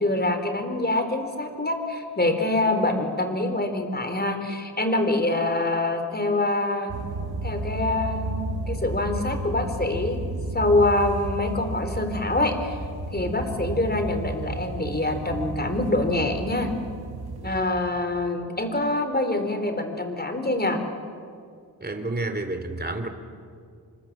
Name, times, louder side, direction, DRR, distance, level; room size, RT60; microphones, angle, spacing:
voice 1, 0.0-6.9 7.4-10.2 10.5-12.8 13.1-16.7 17.4-20.8, left 2 dB, 25° left, 7 dB, 4.1 m, -25 dB
sound 1, 6.9-17.6, right 2 dB, 70° right, 2.6 m, -32 dB
voice 2, 21.8-23.1, right 2 dB, 25° right, 7 dB, 3.4 m, -29 dB
28.5 x 25.0 x 7.6 m, 2.2 s
cardioid pair, 75°, 39 cm